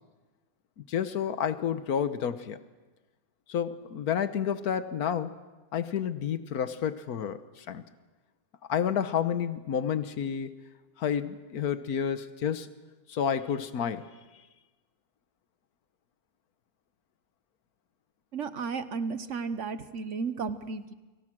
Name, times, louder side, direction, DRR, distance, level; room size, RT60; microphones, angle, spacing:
voice 1, 0.8-2.6 3.5-5.4 5.7-7.8 8.7-10.5 11.0-12.7 13.1-14.1, left 8 dB, 85° left, 12 dB, 1.6 m, -30 dB
voice 2, 18.3-20.9, right 5 dB, 55° right, 12 dB, 1.3 m, -33 dB
29.5 x 26.0 x 6.2 m, 1.2 s
omnidirectional pair, 1.6 m